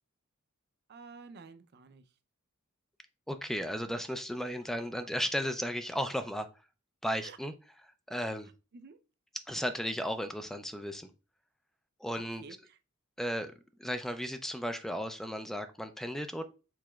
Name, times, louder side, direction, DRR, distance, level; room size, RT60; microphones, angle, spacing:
voice 1, 0.9-2.1 7.2-7.4 8.7-9.0 12.1-12.8, right 4 dB, 50° right, 0.5 m, -51 dB
voice 2, 3.3-6.5 7.0-7.5 8.1-8.5 9.5-11.1 12.0-12.4 13.2-13.5 13.8-16.5, equal, ahead, 0.3 m, -35 dB
4.8 x 4.1 x 2.3 m
head